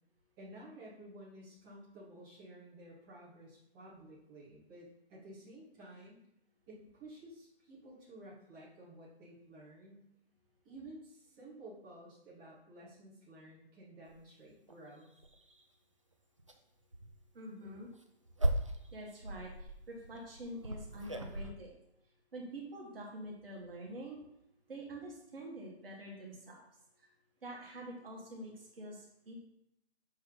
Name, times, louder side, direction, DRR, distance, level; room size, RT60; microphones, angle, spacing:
voice 1, 0.4-6.2 6.7-10.0 10.6-15.1, right 1 dB, 15° right, -10 dB, 1.8 m, -53 dB
sound 1, 14.1-14.2 14.7-14.8 15.2-15.6 16.4-16.6 16.9-17.1 17.7-21.5, right 1 dB, 30° right, 0.4 m, -37 dB
voice 2, 17.3-17.9 18.9-21.7 22.3-24.2 24.7-26.6 27.0-27.1 27.4-29.3, right 1 dB, 60° right, -2 dB, 1.8 m, -46 dB
6.9 x 4.2 x 3.9 m, 0.78 s
hypercardioid pair, 160°, 33 cm